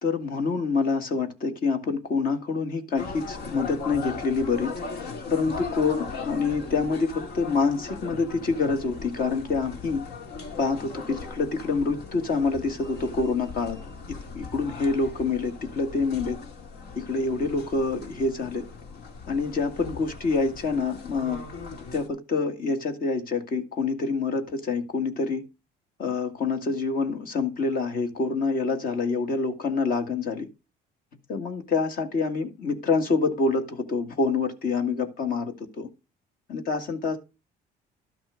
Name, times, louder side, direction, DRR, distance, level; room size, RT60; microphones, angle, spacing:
voice 1, 0.0-4.7 5.3-10.0 10.6-13.8 14.3-16.4 17.0-18.6 19.3-21.4 21.9-25.4 26.0-30.5 31.3-35.9 36.5-37.2, left 4 dB, 55° left, 1.9 m, -26 dB
sound 1, 3.0-22.1, left 4 dB, 75° left, 2.1 m, -39 dB
12.5 x 6.0 x 5.0 m
cardioid pair, 110°, 17 cm